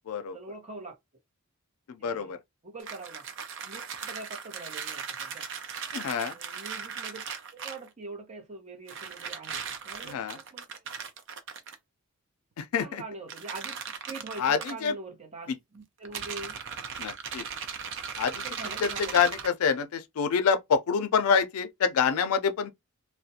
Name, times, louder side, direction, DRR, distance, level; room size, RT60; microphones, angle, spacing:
voice 1, 0.3-0.9 2.0-3.2 3.6-5.4 6.3-7.2 7.5-10.2 10.5-10.8 12.8-16.6 18.4-19.3, right 3 dB, 30° right, 0.9 m, -43 dB
voice 2, 1.9-2.4 5.9-6.3 10.0-10.4 12.6-13.0 14.4-14.9 17.0-17.4 18.2-18.5 18.8-22.7, left 6 dB, 85° left, 0.4 m, -26 dB
sound 1, 2.8-7.9 8.9-11.7 13.3-14.7 16.0-19.5, right 7 dB, 60° right, 0.5 m, -38 dB
2.4 x 2.1 x 2.6 m
head